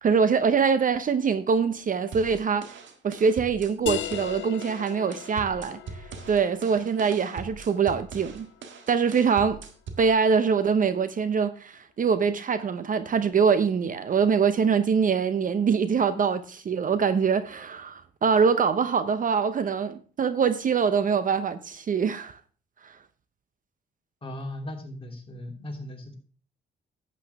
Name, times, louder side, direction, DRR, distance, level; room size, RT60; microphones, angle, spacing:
voice 1, 0.0-2.7 3.0-5.8 6.3-8.5 8.9-9.6 10.0-22.4 22.8-22.9, right 6 dB, 45° right, 0.7 m, -24 dB
sound 1, 2.1-10.1, right 5 dB, 70° right, 1.6 m, -41 dB
sound 2, 3.9-9.2, left 13 dB, 70° left, 0.5 m, -39 dB
voice 2, 24.2-26.2, left 1 dB, 25° left, 2.8 m, -37 dB
11.5 x 8.5 x 3.5 m
cardioid pair, 90°, 20 cm